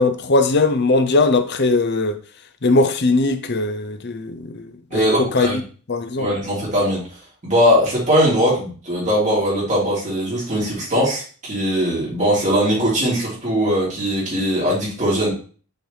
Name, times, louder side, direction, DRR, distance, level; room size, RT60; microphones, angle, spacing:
voice 1, 0.0-2.2 2.6-4.7 4.9-5.6 5.9-6.3, left 2 dB, 50° left, 0.6 m, -19 dB
voice 2, 4.9-5.6 6.2-7.0 7.4-15.3, equal, 35° right, 3.2 m, -20 dB
6.4 x 4.5 x 3.3 m
head